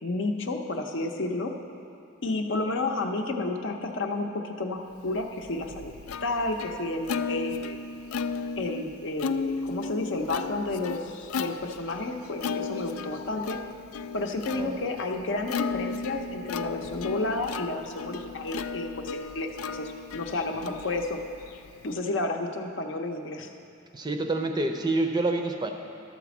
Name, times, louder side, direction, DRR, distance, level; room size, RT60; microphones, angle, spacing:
voice 1, 0.0-1.5 2.2-5.9 6.2-7.8 8.6-13.6 14.1-21.2 21.8-23.5, left 2 dB, 60° left, 3 dB, 0.7 m, -31 dB
Plucked string instrument, 5.2-21.9, left 5 dB, 90° left, 0.3 m, -35 dB
voice 2, 23.9-25.7, right 2 dB, 20° right, 4 dB, 0.5 m, -28 dB
12.5 x 4.2 x 7.1 m, 2.9 s
head